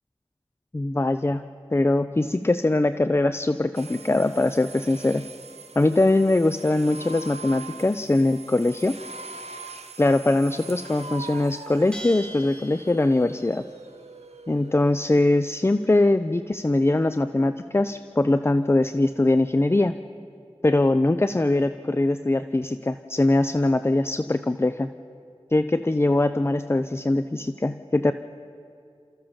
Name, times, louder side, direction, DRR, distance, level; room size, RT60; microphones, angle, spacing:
voice 1, 0.7-1.4 1.7-5.3 5.8-9.0 10.0-13.6 14.5-19.9 20.6-24.9 25.5-28.1, left 2 dB, 25° left, 11 dB, 0.5 m, -22 dB
sound 1, 3.7-15.5, right 3 dB, 90° right, 0.9 m, -43 dB
Bell, 11.9-13.5, right 1 dB, 10° left, 2.3 m, -41 dB
29.5 x 14.5 x 7.3 m, 2.5 s
wide cardioid pair, 60°, 11 cm